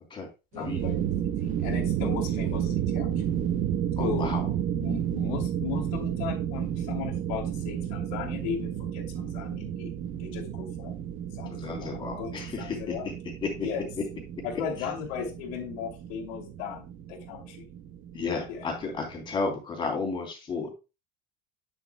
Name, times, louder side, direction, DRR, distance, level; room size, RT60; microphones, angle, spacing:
voice 1, 0.5-1.0 1.4-3.1 4.0-4.3 4.7-9.9 10.2-10.9 11.3-13.1 13.6-13.9 14.4-17.6 18.5-18.6, left 7 dB, 75° left, -1 dB, 2.7 m, -36 dB
sound 1, 0.6-19.4, right 10 dB, 45° right, 0.9 m, -32 dB
voice 2, 4.0-4.5 11.5-13.1 13.4-13.5 18.1-20.7, left 4 dB, 25° left, 1 dB, 3.2 m, -33 dB
9.1 x 8.1 x 2.2 m, 0.28 s
cardioid pair, 145°, 19 cm